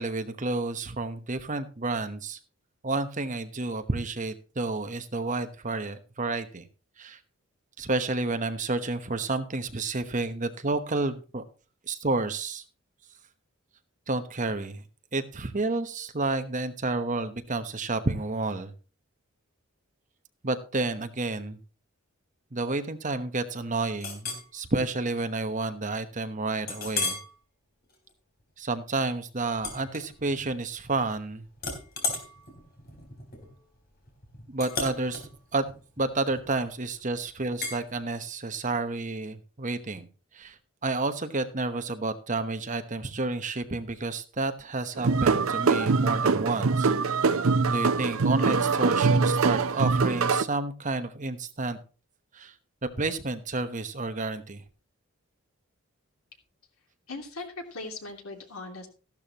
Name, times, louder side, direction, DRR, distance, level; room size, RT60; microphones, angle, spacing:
voice 1, 0.0-2.4 2.8-6.6 7.0-7.2 7.8-11.4 11.9-12.6 14.1-14.8 15.1-18.7 20.4-21.6 22.5-27.2 28.6-31.4 34.5-35.6 36.0-40.1 40.3-46.9 47.7-51.8 52.3-52.5 52.8-54.6, right 3 dB, 35° right, 9 dB, 1.0 m, -30 dB
Chink clink, 24.0-24.5 25.0-25.2 25.6-25.7 26.7-27.3 27.8-28.1 29.6-30.5 30.8-31.2 31.6-36.7 37.6-37.8, left 3 dB, 45° left, 3.8 m, -35 dB
sound 1, 45.0-50.4, right 4 dB, 75° right, 0.6 m, -23 dB
voice 2, 57.1-58.9, left 3 dB, 80° left, 3 dB, 2.8 m, -39 dB
14.0 x 12.0 x 3.0 m, 0.34 s
head